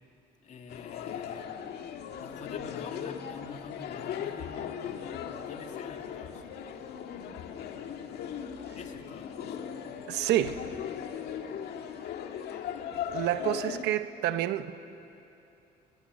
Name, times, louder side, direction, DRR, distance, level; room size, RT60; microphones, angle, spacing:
voice 1, 0.4-1.6 2.2-6.7 8.8-9.6, left 5 dB, 45° left, 4 dB, 2.3 m, -46 dB
sound 1, 0.7-13.8, left 8 dB, 70° left, 1.8 m, -38 dB
voice 2, 10.1-10.6 13.1-14.7, right 12 dB, 85° right, 11 dB, 1.1 m, -28 dB
29.5 x 16.5 x 9.8 m, 2.9 s
cardioid pair, 110°, 17 cm